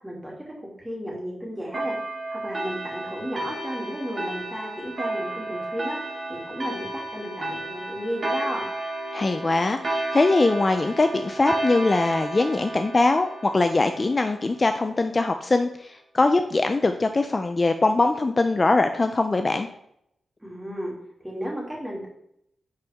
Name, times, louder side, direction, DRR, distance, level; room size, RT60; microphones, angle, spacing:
voice 1, 0.0-0.3 0.8-1.9 2.3-6.0 6.3-8.6 20.4-20.9 21.2-22.1, equal, 10° right, -3 dB, 2.7 m, -33 dB
sound 1, 1.7-14.8, right 2 dB, 45° right, 2.4 m, -32 dB
voice 2, 9.1-19.7, left 3 dB, 30° left, 7 dB, 0.4 m, -22 dB
10.5 x 4.5 x 3.5 m, 0.75 s
wide cardioid pair, 95°, 0 cm